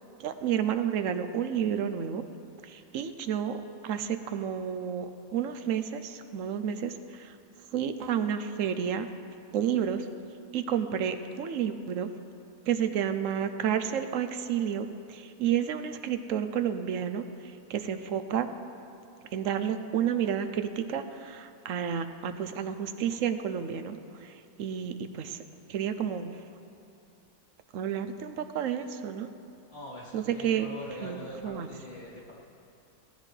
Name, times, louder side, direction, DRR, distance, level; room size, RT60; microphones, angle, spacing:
voice 1, 0.2-2.2 2.6-7.3 7.7-9.1 9.5-10.1 10.5-12.1 12.7-17.3 17.7-18.5 19.3-24.3 24.6-25.4 25.7-26.3 27.7-29.3 30.1-30.7 31.0-31.7, right 8 dB, 65° right, 9 dB, 0.9 m, -30 dB
voice 2, 29.7-32.3, equal, 40° left, -8 dB, 3.4 m, -43 dB
17.5 x 14.5 x 3.3 m, 2.6 s
omnidirectional pair, 1.6 m